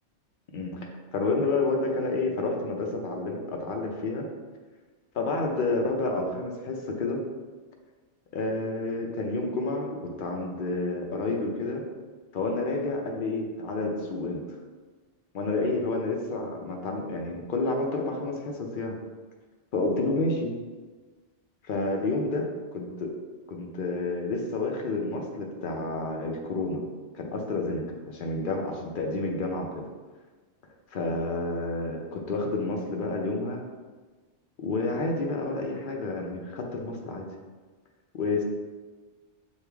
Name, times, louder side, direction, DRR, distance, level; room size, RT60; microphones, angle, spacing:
voice 1, 1.1-4.2 5.1-7.2 8.3-11.8 12.3-14.4 15.3-19.0 19.7-20.5 21.6-23.1 23.5-26.8 27.1-29.8 30.9-33.6 34.6-37.3 38.1-38.4, left 2 dB, 55° left, 1 dB, 0.7 m, -29 dB
6.4 x 2.4 x 3.4 m, 1.3 s
omnidirectional pair, 1.2 m